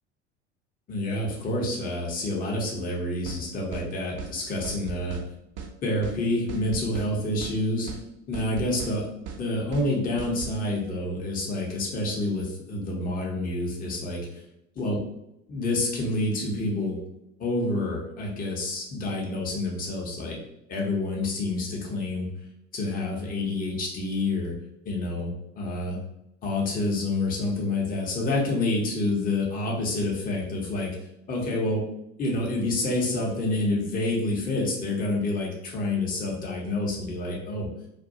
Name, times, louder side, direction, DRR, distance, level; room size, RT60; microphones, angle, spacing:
voice 1, 0.9-5.2 5.8-7.9 8.3-9.1 9.4-14.4 14.8-15.0 15.5-17.0 17.4-20.4 20.7-22.3 22.7-24.5 24.8-26.0 26.4-31.0 31.3-31.8 32.2-37.7, left 2 dB, 25° left, -3 dB, 0.7 m, -28 dB
sound 1, 3.3-3.4 3.7-3.9 4.2-4.3 4.6-5.3 5.6-5.7 6.0-6.2 6.5-7.1 7.4-7.6 7.9-8.0 8.3-9.0 9.3-9.4 9.7-9.9 10.2-10.6, right 6 dB, 45° right, 0.5 m, -37 dB
2.4 x 2.2 x 2.7 m, 0.83 s
figure-of-eight pair, 65°, 36 cm